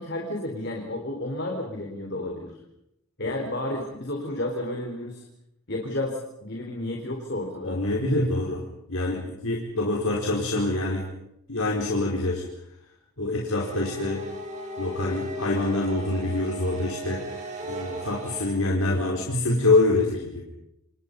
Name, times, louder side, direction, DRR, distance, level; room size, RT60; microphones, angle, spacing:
voice 1, 0.0-2.5 3.2-5.2 5.7-7.8, left 1 dB, 50° left, 1 dB, 4.6 m, -31 dB
voice 2, 7.6-8.6 8.9-11.1 11.5-12.4 13.2-14.2 14.8-20.4, left 2 dB, 75° left, -1 dB, 4.8 m, -25 dB
sound 1, 13.5-18.4, right 1 dB, 35° right, 7.9 m, -36 dB
29.5 x 29.0 x 5.6 m, 0.80 s
head